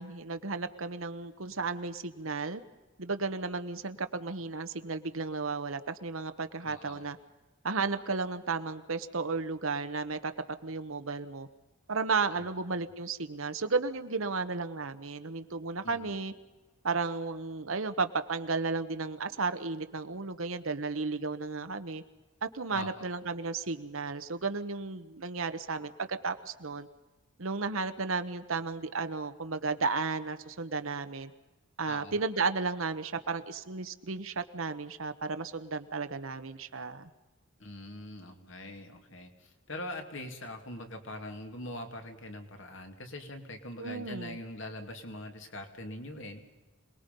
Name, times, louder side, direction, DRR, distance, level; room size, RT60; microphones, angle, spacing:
voice 1, 0.0-2.6 3.0-7.2 7.6-10.3 10.6-11.5 11.9-16.3 16.8-22.0 22.4-26.9 27.4-31.3 31.8-37.1 43.8-44.4, right 4 dB, 75° right, 9 dB, 1.1 m, -33 dB
voice 2, 6.6-7.1 12.3-12.5 15.8-16.2 22.7-23.1 31.8-32.2 37.6-46.4, left 1 dB, 65° left, 5 dB, 2.6 m, -43 dB
27.0 x 20.0 x 5.4 m, 1.2 s
head